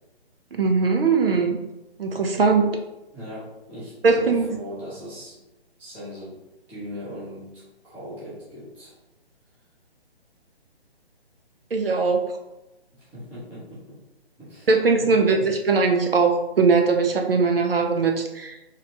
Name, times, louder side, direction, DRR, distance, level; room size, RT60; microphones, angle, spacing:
voice 1, 0.6-1.6 2.0-2.7 4.0-4.5 11.7-12.2 14.7-18.6, right 4 dB, 60° right, 3 dB, 0.6 m, -20 dB
voice 2, 3.1-5.4 5.8-6.4 6.7-9.0 12.9-14.0 14.4-14.7 15.0-15.5, equal, 5° right, -11 dB, 0.7 m, -39 dB
3.9 x 3.2 x 2.7 m, 0.98 s
figure-of-eight pair, 140°, 32 cm